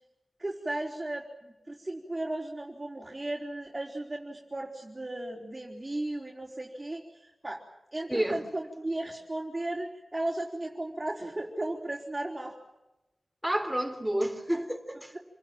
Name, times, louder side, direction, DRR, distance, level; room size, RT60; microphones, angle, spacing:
voice 1, 0.4-7.6 7.9-12.5, right 1 dB, 25° right, -2 dB, 4.3 m, -35 dB
voice 2, 13.4-15.2, right 1 dB, 10° right, 5 dB, 3.9 m, -30 dB
27.5 x 20.0 x 9.1 m, 0.98 s
wide cardioid pair, 70°, 0 cm